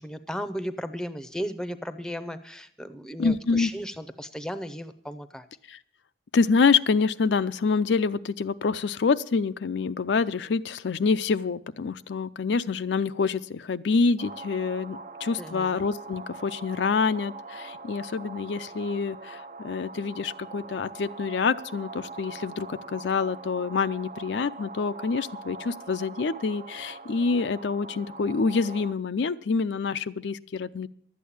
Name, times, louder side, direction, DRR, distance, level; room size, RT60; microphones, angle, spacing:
voice 1, 0.0-5.5 15.4-15.8, equal, 5° left, 12 dB, 0.6 m, -35 dB
voice 2, 3.2-3.7 5.7-5.8 6.3-30.9, left 4 dB, 75° left, 12 dB, 0.5 m, -26 dB
sound 1, 14.2-28.9, right 3 dB, 40° right, 0.5 m, -42 dB
12.0 x 8.4 x 8.6 m, 0.63 s
head